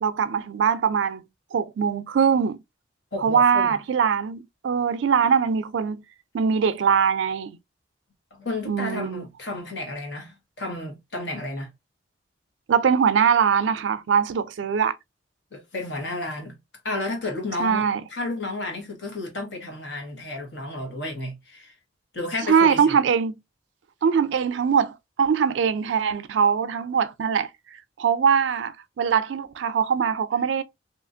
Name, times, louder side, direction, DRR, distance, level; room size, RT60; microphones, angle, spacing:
voice 1, 0.0-1.2 1.5-2.6 3.2-6.0 6.3-7.6 8.7-9.2 12.7-14.9 17.6-18.0 22.5-23.4 24.0-27.5 28.0-30.6, right 6 dB, 75° right, 0.4 m, -22 dB
voice 2, 3.1-3.8 8.3-11.7 15.5-16.6 16.8-21.7 22.1-23.0, left 2 dB, 75° left, 1.2 m, -32 dB
2.9 x 2.4 x 2.5 m
head